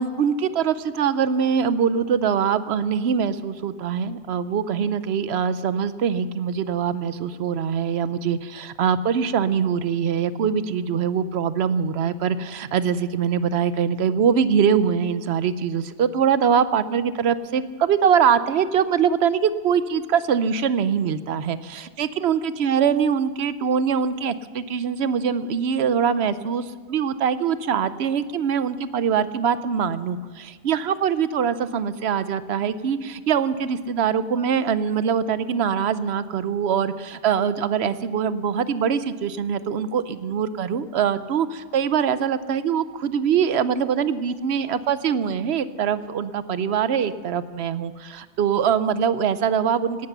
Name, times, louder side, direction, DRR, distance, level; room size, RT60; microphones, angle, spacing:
voice 1, 0.0-50.1, right 7 dB, 60° right, 14 dB, 0.8 m, -23 dB
17.0 x 12.0 x 6.8 m, 1.5 s
omnidirectional pair, 1.5 m